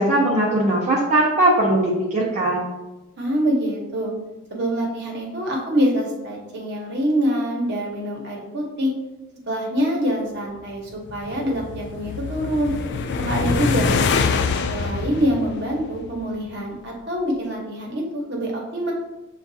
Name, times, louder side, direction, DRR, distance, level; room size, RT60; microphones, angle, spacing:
voice 1, 0.0-2.7, right 1 dB, 35° right, -6 dB, 0.6 m, -19 dB
voice 2, 3.2-4.1 4.5-8.9 9.5-12.7 13.2-14.4 14.7-18.9, equal, 50° right, -1 dB, 1.0 m, -25 dB
sound 1, 10.9-16.4, left 5 dB, 50° left, 0.3 m, -25 dB
7.0 x 2.3 x 2.7 m, 1.0 s
head